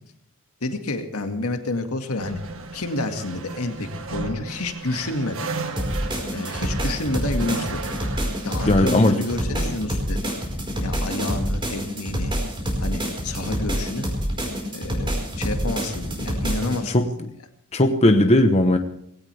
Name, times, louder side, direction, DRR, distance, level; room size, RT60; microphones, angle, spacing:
voice 1, 0.6-2.4 2.7-5.5 6.3-7.8 8.4-10.3 10.8-12.3 12.8-14.1 14.7-17.1, left 2 dB, 75° left, 5 dB, 2.1 m, -29 dB
sound 1, 2.2-10.8, right 4 dB, 65° right, 1.6 m, -35 dB
sound 2, 5.8-16.8, equal, 25° right, 4.7 m, -27 dB
voice 2, 8.7-9.2 16.9-17.1 17.7-18.8, left 1 dB, 30° left, 5 dB, 1.0 m, -17 dB
19.5 x 17.0 x 3.5 m, 0.72 s
head